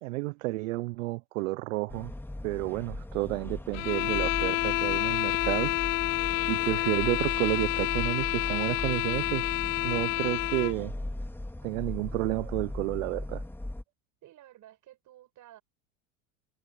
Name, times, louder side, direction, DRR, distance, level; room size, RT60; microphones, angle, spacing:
voice 1, 0.0-2.1 2.4-5.7 6.5-9.5 9.8-10.9 11.6-13.4, right 21 dB, 75° right, 0.9 m, -31 dB
sound 1, 1.9-13.8, left 1 dB, 5° left, 2.6 m, -38 dB
sound 2, 3.7-10.8, left 25 dB, 70° left, 0.7 m, -29 dB
voice 2, 14.2-15.6, right 13 dB, 50° right, 6.9 m, -53 dB
hypercardioid pair, 90°, 40 cm